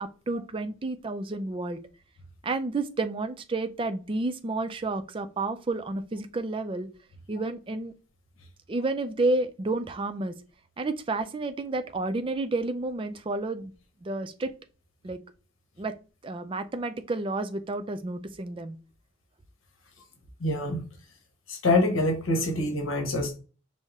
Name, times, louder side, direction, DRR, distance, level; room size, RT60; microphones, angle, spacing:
voice 1, 0.0-1.8 2.4-6.9 7.3-7.9 8.7-10.3 10.8-13.7 14.0-14.5 15.0-15.2 15.8-16.0 16.2-18.8, right 2 dB, 25° right, 8 dB, 0.3 m, -30 dB
voice 2, 20.4-20.9 21.5-23.4, left 2 dB, 75° left, 3 dB, 1.2 m, -25 dB
5.4 x 2.1 x 3.5 m, 0.35 s
head